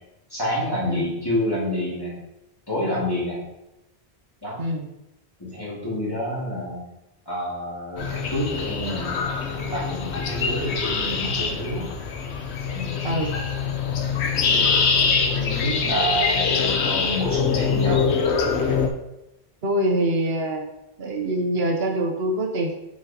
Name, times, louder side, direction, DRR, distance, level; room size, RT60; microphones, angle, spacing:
voice 1, 0.3-2.1 2.7-3.4 4.4-4.6 5.4-6.8 7.3-11.9 12.7-13.0 14.3-14.7 15.3-18.1, equal, 20° left, -6 dB, 2.4 m, -28 dB
sound 1, 8.0-18.9, left 5 dB, 90° left, 1.1 m, -24 dB
voice 2, 19.6-20.7 21.0-22.7, right 1 dB, 70° right, 3 dB, 1.1 m, -24 dB
8.0 x 6.3 x 2.8 m, 0.91 s
omnidirectional pair, 1.1 m